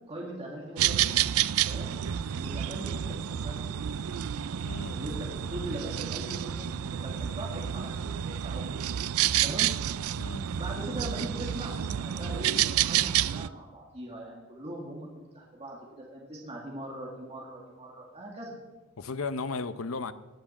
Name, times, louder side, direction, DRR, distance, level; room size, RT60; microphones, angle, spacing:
voice 1, 0.1-1.2 1.7-2.0 2.3-3.8 4.9-8.1 8.4-8.8 9.4-9.7 10.6-15.1 15.3-18.6, right 1 dB, 30° right, 2.2 m, -40 dB
sound 1, 0.8-13.5, right 10 dB, 75° right, 0.4 m, -29 dB
voice 2, 4.6-5.0 10.2-10.5 19.0-20.1, left 4 dB, 65° left, 0.8 m, -35 dB
19.5 x 7.6 x 7.3 m
head